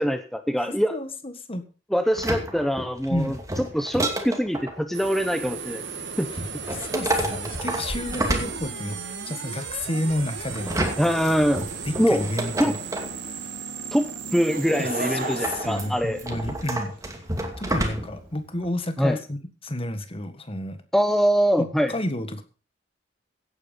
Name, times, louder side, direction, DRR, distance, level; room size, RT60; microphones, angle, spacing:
voice 1, 0.0-1.0 1.9-5.8 6.2-6.3 6.7-6.8 11.0-11.6 12.0-12.2 12.6-12.7 13.9-16.2 19.0-19.2 20.9-21.9, equal, ahead, 8 dB, 0.8 m, -23 dB
voice 2, 0.6-1.6 3.1-3.4 6.7-9.0 9.3-11.1 11.8-12.8 14.8-16.9 17.6-20.8 21.6-22.4, left 1 dB, 30° left, 9 dB, 1.7 m, -31 dB
sound 1, 2.1-4.8 6.4-9.1 10.5-13.2 15.2-18.3 18.6-18.7, right 1 dB, 15° right, 2.5 m, -30 dB
sound 2, 4.9-16.9, right 5 dB, 65° right, 2.5 m, -36 dB
Laughter / Crowd, 14.3-16.9 17.6-17.7, right 3 dB, 50° right, 3.4 m, -34 dB
16.5 x 9.5 x 5.4 m, 0.35 s
head